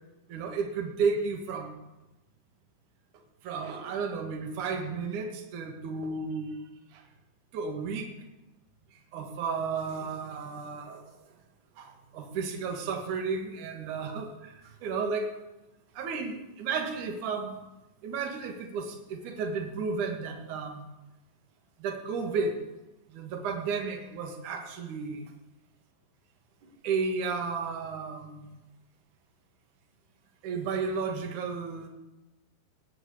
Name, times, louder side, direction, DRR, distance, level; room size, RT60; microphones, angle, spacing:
voice 1, 0.3-1.7 3.4-6.6 6.9-7.0 7.5-8.1 9.1-11.0 11.8-15.3 15.9-17.6 18.0-20.8 21.8-22.6 23.1-25.3 26.6-28.5 30.4-31.9, right 5 dB, 55° right, 3 dB, 2.7 m, -33 dB
18.0 x 7.9 x 8.4 m, 0.99 s
omnidirectional pair, 5.2 m